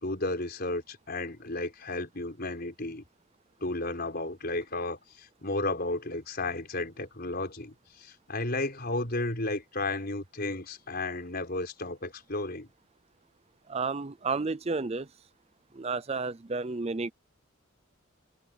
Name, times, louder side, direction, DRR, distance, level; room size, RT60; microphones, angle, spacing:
voice 1, 0.0-3.0 3.6-12.7, left 2 dB, 50° left, 5.0 m, -33 dB
voice 2, 13.7-15.1 15.8-17.1, right 4 dB, 30° right, 0.5 m, -31 dB
open air
head